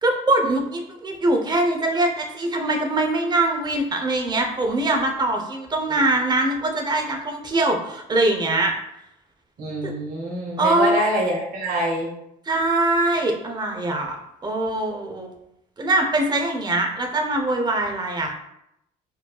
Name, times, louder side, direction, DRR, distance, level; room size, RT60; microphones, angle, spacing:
voice 1, 0.0-8.7 9.8-9.9 10.6-11.1 12.5-14.2 14.4-15.3 15.8-18.3, right 2 dB, 25° right, 3 dB, 0.7 m, -22 dB
voice 2, 9.6-12.1, right 1 dB, 65° right, -2 dB, 1.4 m, -26 dB
4.7 x 2.6 x 2.3 m, 0.80 s
cardioid pair, 110°, 17 cm